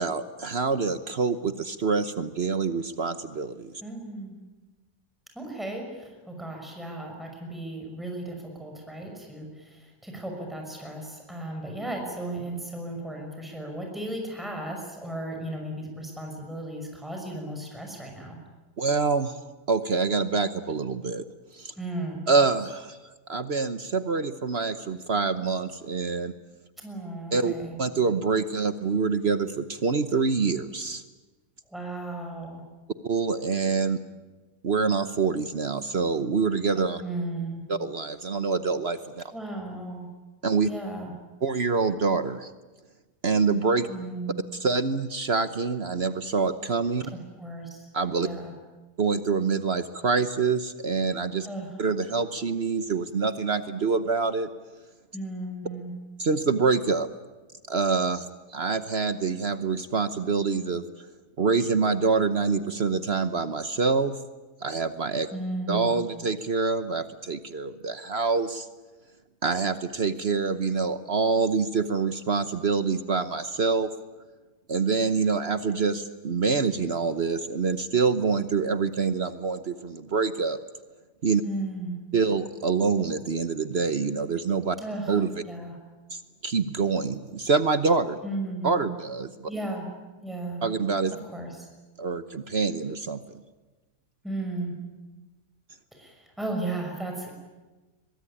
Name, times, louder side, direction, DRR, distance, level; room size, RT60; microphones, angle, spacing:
voice 1, 0.0-3.7 18.8-19.4 19.7-21.2 21.5-21.7 22.3-23.0 23.3-26.3 27.3-27.5 27.8-31.0 33.0-34.0 34.6-37.0 37.7-39.2 40.4-40.7 41.4-42.5 43.2-43.9 44.5-47.1 47.9-48.3 49.0-51.5 51.8-54.5 56.2-57.1 57.7-60.8 61.4-64.2 64.6-65.3 65.7-68.7 69.4-73.9 74.7-80.6 81.2-81.4 82.1-84.8 85.1-85.3 86.1-88.2 88.6-89.5 90.6-91.2 92.0-93.2, right 4 dB, 45° right, 11 dB, 1.1 m, -26 dB
voice 2, 3.8-4.4 5.4-18.4 21.8-22.2 26.8-27.8 31.7-32.6 37.0-37.6 39.3-40.1 40.7-41.1 43.9-44.3 47.4-47.7 48.2-48.5 51.5-51.7 55.1-55.9 65.3-65.9 81.4-82.0 84.8-85.1 85.5-85.7 88.2-88.7 89.5-89.9 90.2-90.6 91.3-91.5 94.2-94.7 96.0-97.3, right 2 dB, ahead, 2 dB, 5.9 m, -35 dB
23.0 x 22.5 x 10.0 m, 1.2 s
omnidirectional pair, 1.7 m